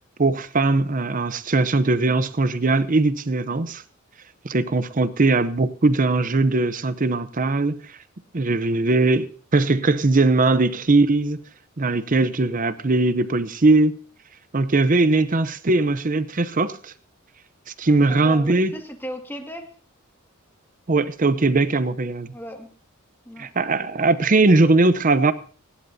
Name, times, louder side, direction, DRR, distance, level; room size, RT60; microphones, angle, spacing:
voice 1, 0.2-3.8 4.4-7.8 8.3-11.4 11.8-14.0 14.5-16.9 17.8-18.7 20.9-22.3 23.4-25.3, right 3 dB, 40° right, 13 dB, 0.7 m, -20 dB
voice 2, 18.1-19.7 22.3-22.7 23.3-23.5, equal, 10° left, 3 dB, 2.0 m, -36 dB
30.0 x 11.5 x 2.7 m, 0.42 s
head